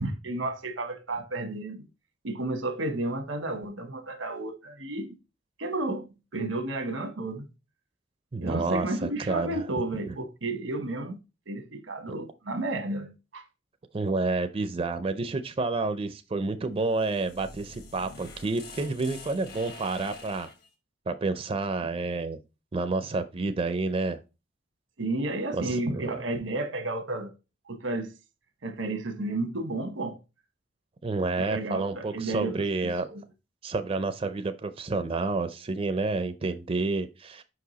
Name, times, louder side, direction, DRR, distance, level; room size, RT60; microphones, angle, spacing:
voice 1, 0.0-1.9 2.2-5.2 5.6-7.5 8.4-13.4 25.0-27.3 27.7-28.1 28.6-30.2 31.4-33.2, right 2 dB, 90° right, 1.1 m, -32 dB
voice 2, 8.3-9.6 10.1-10.2 13.9-20.5 21.1-22.4 22.7-24.2 25.5-26.2 31.0-33.1 33.6-37.4, right 3 dB, 30° right, 0.4 m, -29 dB
sound 1, 16.8-20.7, left 3 dB, 60° left, 1.3 m, -46 dB
5.2 x 4.8 x 3.9 m
head